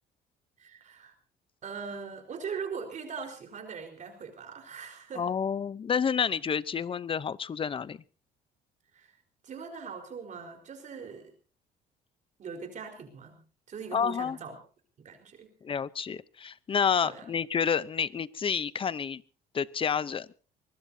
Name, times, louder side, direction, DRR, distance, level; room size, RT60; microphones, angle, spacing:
voice 1, 0.6-1.1 1.6-5.3 8.9-9.2 9.4-11.3 12.4-14.6 15.0-15.5 17.0-17.2, right 5 dB, 45° right, 4 dB, 4.6 m, -41 dB
voice 2, 5.2-8.0 13.9-14.4 15.6-19.2 19.5-20.3, left 7 dB, 30° left, 18 dB, 0.8 m, -29 dB
24.0 x 20.5 x 2.8 m, 0.38 s
cardioid pair, 110°, 17 cm